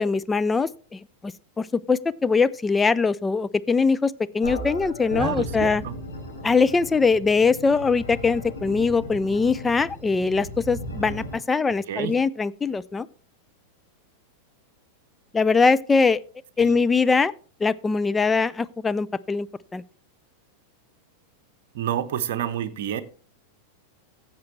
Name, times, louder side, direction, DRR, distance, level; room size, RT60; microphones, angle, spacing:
voice 1, 0.0-5.8 6.4-13.1 15.3-16.2 16.6-17.3 17.6-19.8, left 4 dB, 15° left, 0.4 m, -22 dB
sound 1, 4.4-11.4, left 1 dB, 70° left, 5.2 m, -36 dB
voice 2, 5.2-5.9 11.9-12.1 16.6-16.8 21.7-23.0, right 10 dB, 55° right, 0.8 m, -29 dB
15.0 x 7.4 x 3.2 m
figure-of-eight pair, 90°, 0 cm